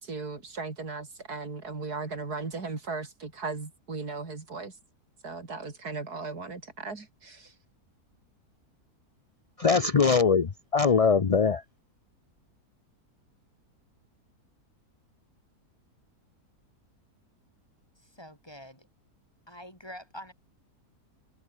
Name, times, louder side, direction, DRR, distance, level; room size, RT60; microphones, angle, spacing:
voice 1, 0.0-4.7 5.2-7.5, right 4 dB, 75° right, 3.8 m, -37 dB
voice 2, 9.6-11.6, left 5 dB, 40° left, 0.5 m, -22 dB
voice 3, 18.0-18.9 19.5-20.3, equal, 15° left, 7.1 m, -45 dB
omnidirectional pair, 1.7 m